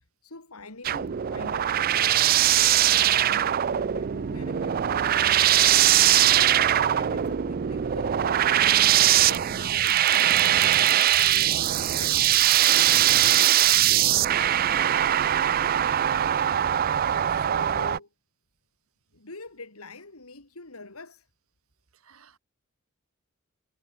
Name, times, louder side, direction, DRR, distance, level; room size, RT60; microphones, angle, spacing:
voice 1, 0.0-10.1 11.0-14.2 17.0-18.1 19.1-21.3, left 3 dB, 90° left, 3.6 m, -44 dB
sound 1, 0.8-18.0, right 12 dB, 45° right, 0.4 m, -21 dB
voice 2, 15.9-16.4 22.1-22.4, right 3 dB, 80° right, 1.7 m, -49 dB
head